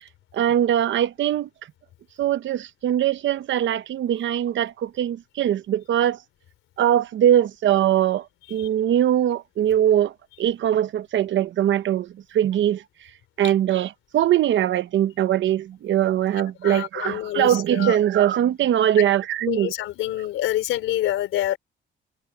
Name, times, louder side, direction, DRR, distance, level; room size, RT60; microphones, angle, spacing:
voice 1, 0.3-1.5 2.2-6.2 6.8-8.2 8.5-10.1 10.4-12.1 12.3-12.8 13.4-19.7, right 11 dB, 70° right, 1.1 m, -21 dB
voice 2, 16.6-18.0 19.5-21.6, left 13 dB, 85° left, 3.8 m, -26 dB
cardioid pair, 90°, 20 cm